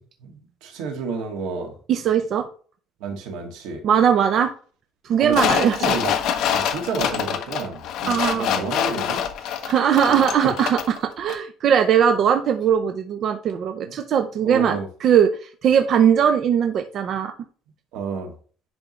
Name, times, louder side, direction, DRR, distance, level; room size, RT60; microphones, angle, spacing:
voice 1, 0.2-1.7 3.0-3.8 5.2-9.6 10.1-10.2 13.8-14.0 14.4-14.9 17.9-18.3, right 4 dB, 80° right, 2 dB, 2.0 m, -31 dB
voice 2, 1.9-2.5 3.8-4.5 5.0-5.8 8.1-8.7 9.6-17.3, right 8 dB, 40° right, 6 dB, 0.6 m, -20 dB
sound 1, 5.3-11.0 11.3-11.4, left 9 dB, 55° left, 0.9 m, -25 dB
10.5 x 3.9 x 3.1 m, 0.41 s
cardioid pair, 160°, 0 cm